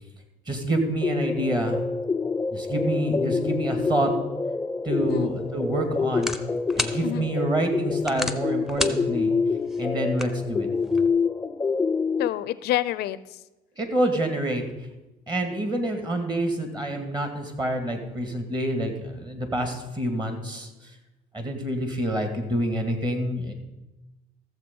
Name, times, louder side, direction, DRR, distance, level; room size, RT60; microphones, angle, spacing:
voice 1, 0.5-1.8 2.5-4.1 4.8-6.3 6.8-9.3 9.8-10.7 13.8-14.6 15.3-20.7 21.3-23.5, right 1 dB, 25° right, 6 dB, 2.1 m, -27 dB
sound 1, 1.0-12.3, left 4 dB, 15° left, 0.3 m, -27 dB
voice 2, 5.0-5.3 7.0-7.3 12.2-13.4, left 14 dB, 75° left, 16 dB, 0.5 m, -28 dB
sound 2, 5.0-11.1, left 1 dB, ahead, 0.8 m, -35 dB
14.0 x 7.4 x 5.3 m, 1.0 s
cardioid pair, 110°, 17 cm